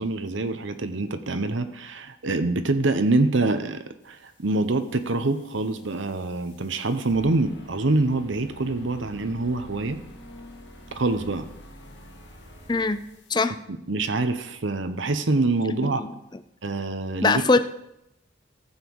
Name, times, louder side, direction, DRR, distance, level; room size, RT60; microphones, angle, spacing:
voice 1, 0.0-10.0 10.9-11.5 13.9-16.0 16.6-17.4, right 2 dB, 75° right, 9 dB, 0.9 m, -25 dB
sound 1, 4.7-13.3, equal, 65° left, 1.7 m, -47 dB
voice 2, 12.7-13.0 13.3-13.6 15.8-16.4 17.2-17.6, left 3 dB, 20° left, 11 dB, 0.4 m, -22 dB
14.5 x 7.3 x 4.7 m, 0.84 s
head